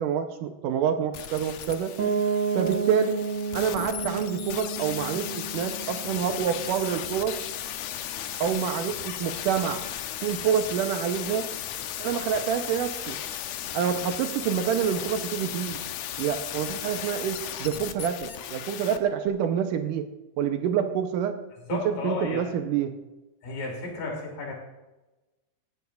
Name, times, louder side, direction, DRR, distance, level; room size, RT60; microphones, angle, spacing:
voice 1, 0.0-1.9 2.6-3.2 3.5-7.4 8.4-9.8 10.2-11.5 12.0-13.2 13.7-15.8 16.2-20.1 20.4-21.4 21.7-22.9, right 8 dB, 75° right, 6 dB, 2.3 m, -27 dB
sound 1, 1.1-19.0 19.3-19.4, left 11 dB, 85° left, 1.5 m, -36 dB
Piano, 2.0-7.7, right 5 dB, 55° right, 1.8 m, -31 dB
voice 2, 21.7-22.5 23.4-24.5, left 3 dB, 70° left, -1 dB, 4.6 m, -33 dB
17.5 x 13.0 x 2.5 m, 1.1 s
omnidirectional pair, 4.1 m